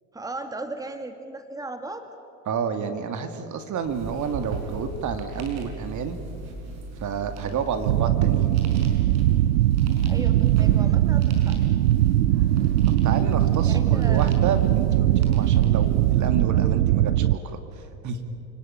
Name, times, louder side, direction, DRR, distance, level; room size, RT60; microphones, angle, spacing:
voice 1, 0.1-2.1 10.1-11.6 13.7-14.3, right 2 dB, 10° right, 7 dB, 2.1 m, -36 dB
voice 2, 2.5-6.2 6.9-8.6 12.9-18.4, right 6 dB, 45° right, 8 dB, 2.3 m, -30 dB
sound 1, 3.8-16.3, right 2 dB, 60° right, 5.5 m, -36 dB
sound 2, 7.9-17.4, right 13 dB, 90° right, 0.6 m, -20 dB
29.0 x 19.0 x 9.2 m, 2.8 s
hypercardioid pair, 85°, 42 cm